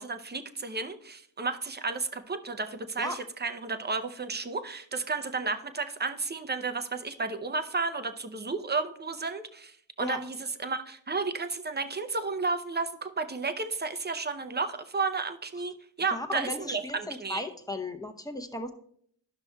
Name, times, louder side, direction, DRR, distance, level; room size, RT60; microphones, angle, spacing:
voice 1, 0.0-15.7 16.0-17.4, right 4 dB, 25° right, 9 dB, 0.6 m, -32 dB
voice 2, 16.1-18.7, left 1 dB, 10° left, 6 dB, 0.8 m, -35 dB
12.0 x 5.9 x 2.2 m, 0.63 s
cardioid pair, 75°, 45 cm